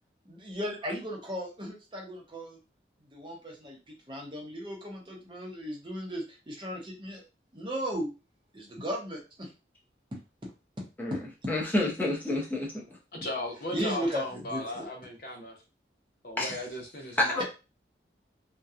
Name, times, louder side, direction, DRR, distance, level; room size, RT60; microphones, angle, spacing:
voice 1, 0.3-2.6 3.1-3.8 4.1-7.2 7.5-8.1 8.5-9.5 10.4-10.5 11.4-11.5 13.7-14.9, equal, 25° right, 0.7 m, -36 dB
voice 2, 11.5-12.8 16.4-16.6 17.2-17.4, left 1 dB, 10° left, 0.6 m, -28 dB
voice 3, 13.1-15.6 16.2-17.4, left 1 dB, 55° left, 0.7 m, -36 dB
2.7 x 2.2 x 2.3 m
head